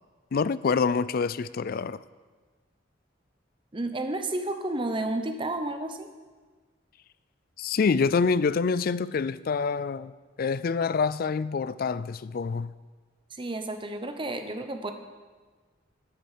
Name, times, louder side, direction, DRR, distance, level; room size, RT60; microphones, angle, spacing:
voice 1, 0.3-2.0 7.6-10.1 10.4-12.7, left 5 dB, 50° left, 0.4 m, -26 dB
voice 2, 3.7-6.1 13.3-14.9, right 2 dB, 25° right, 0.9 m, -31 dB
9.8 x 8.4 x 7.4 m
head